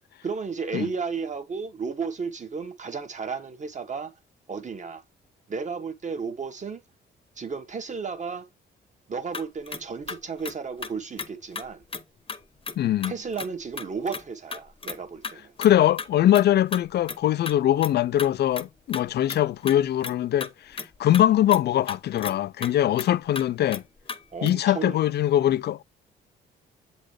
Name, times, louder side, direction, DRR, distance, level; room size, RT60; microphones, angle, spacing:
voice 1, 0.2-4.1 4.5-5.0 5.5-6.8 7.4-8.5 9.1-11.8 13.1-15.5 24.3-25.0, right 5 dB, 35° right, 1.3 m, -33 dB
sound 1, 9.3-10.9 11.2-11.3 11.6-11.7 11.9-12.0 12.3-12.4 12.7-12.8 13.0-13.5 13.7-14.2 14.5-15.0 15.2-15.3 15.6-16.1 16.3-16.4 16.7-16.8 17.1-17.2 17.5-17.6 17.8-18.3 18.5-18.7 18.9-19.8 20.0-20.1 20.4-21.3 21.5-21.6 21.9-22.3 22.6-22.7 23.0-23.1 23.4-23.5 23.7-23.8 24.1-24.2 24.5-24.6, left 4 dB, 25° left, 0.9 m, -34 dB
voice 2, 12.8-13.1 15.6-20.5 21.0-23.8 24.4-25.8, left 12 dB, 55° left, 0.4 m, -22 dB
7.6 x 4.0 x 3.1 m
cardioid pair, 90°, 20 cm